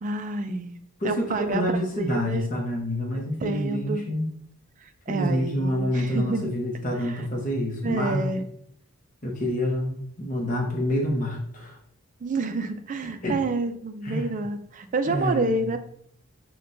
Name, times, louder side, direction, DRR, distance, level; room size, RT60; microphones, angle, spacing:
voice 1, 0.0-0.8 1.0-2.5 3.1-4.0 4.8-6.5 7.0-7.3 7.8-8.4 12.2-15.8, right 3 dB, 35° right, 8 dB, 0.3 m, -29 dB
voice 2, 1.0-4.3 5.1-8.3 9.2-11.8 13.2-13.4 14.0-14.3 15.0-15.6, equal, 35° left, -1 dB, 0.7 m, -27 dB
5.8 x 2.2 x 2.6 m, 0.67 s
head